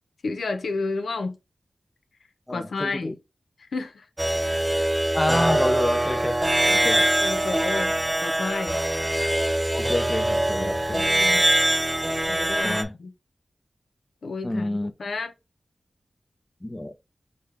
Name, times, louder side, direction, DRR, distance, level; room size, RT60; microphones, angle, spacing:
voice 1, 0.2-1.4 2.5-3.1 3.6-4.1 6.7-7.9 8.2-8.8 10.6-11.5 12.3-13.1 14.2-15.3, left 3 dB, 85° left, 0.9 m, -31 dB
voice 2, 2.5-3.1 5.1-6.4 6.8-7.0 9.7-11.0 12.6-12.9 14.4-14.9 16.6-16.9, left 1 dB, 20° left, 0.7 m, -27 dB
sound 1, 4.2-12.8, right 1 dB, 15° right, 0.9 m, -23 dB
4.2 x 3.4 x 3.4 m
cardioid pair, 60°, 0 cm